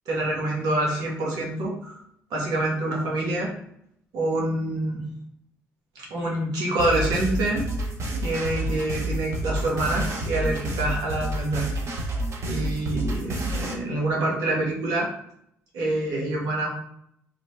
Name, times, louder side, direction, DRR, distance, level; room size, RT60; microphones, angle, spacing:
voice 1, 0.1-2.0 2.3-3.5 4.1-5.0 5.9-7.6 8.2-11.7 12.4-15.1 15.7-16.7, right 1 dB, 80° right, -3 dB, 1.0 m, -26 dB
sound 1, 6.8-13.7, right 1 dB, 50° right, 0.8 m, -29 dB
3.4 x 2.0 x 3.2 m, 0.72 s
supercardioid pair, 60°, 6 cm